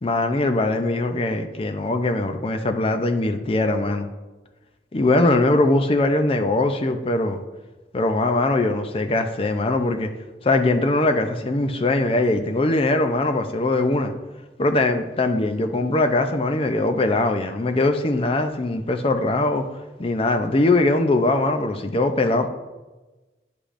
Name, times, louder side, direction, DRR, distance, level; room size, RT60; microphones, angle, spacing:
voice 1, 0.0-4.1 4.9-7.4 7.9-10.1 10.4-14.1 14.6-19.7 20.0-22.5, left 2 dB, 30° left, 6 dB, 0.5 m, -21 dB
9.8 x 5.1 x 2.5 m, 1.2 s
head